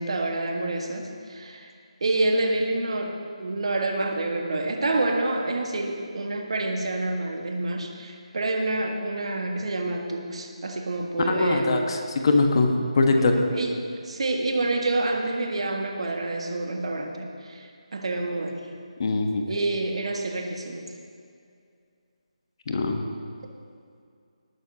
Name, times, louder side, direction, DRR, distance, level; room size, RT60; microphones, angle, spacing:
voice 1, 0.0-1.7 2.0-11.9 13.2-18.6 19.5-20.9, right 2 dB, 60° right, 2 dB, 1.7 m, -28 dB
voice 2, 11.3-13.3 19.0-19.5 22.7-23.0, left 3 dB, 45° left, 4 dB, 1.3 m, -22 dB
19.0 x 9.3 x 2.9 m, 2.3 s
figure-of-eight pair, 155°, 4 cm